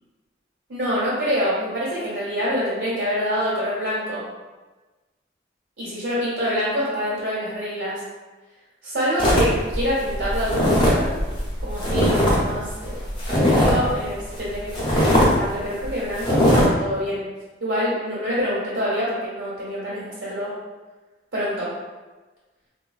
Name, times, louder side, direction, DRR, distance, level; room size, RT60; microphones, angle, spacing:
voice 1, 0.7-4.2 5.8-8.0 8.8-11.1 11.6-13.0 13.3-14.7 15.1-17.2 17.6-20.5 21.3-21.7, equal, 75° right, -10 dB, 1.0 m, -26 dB
sound 1, 9.2-12.4 12.7-13.9 14.3-14.4 14.7-15.3 15.7-15.9 16.2-16.6, equal, 25° left, 0.6 m, -19 dB
3.6 x 2.2 x 2.3 m, 1.2 s
head